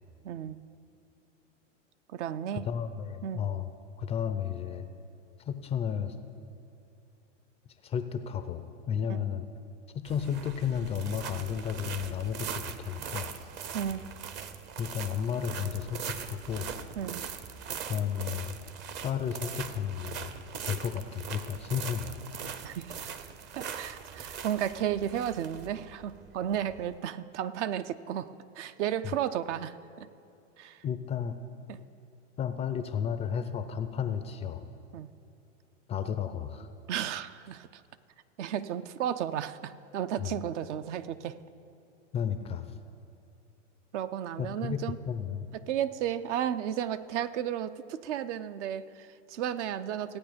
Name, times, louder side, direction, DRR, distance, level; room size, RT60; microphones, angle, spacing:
voice 1, 0.2-0.6 2.1-2.7 3.2-3.4 9.1-9.2 13.7-14.0 17.0-17.2 22.6-23.3 23.6-28.3 28.6-30.1 30.6-30.8 31.7-31.8 34.9-35.1 36.9-37.8 38.4-41.4 43.9-45.0 45.5-50.2, right 10 dB, 65° right, 13 dB, 0.6 m, -33 dB
voice 2, 2.5-3.7 4.0-4.9 5.5-6.2 7.8-9.5 9.9-13.3 14.8-16.7 17.9-18.6 19.0-20.3 20.6-22.2 30.8-31.4 32.4-34.6 35.9-36.7 40.2-40.3 42.1-42.8 44.4-44.8 45.1-45.5, left 8 dB, 15° left, 9 dB, 0.3 m, -33 dB
sound 1, 10.0-27.0, right 7 dB, 30° right, 0.6 m, -41 dB
15.5 x 8.8 x 5.1 m, 2.7 s
hypercardioid pair, 110°, 38 cm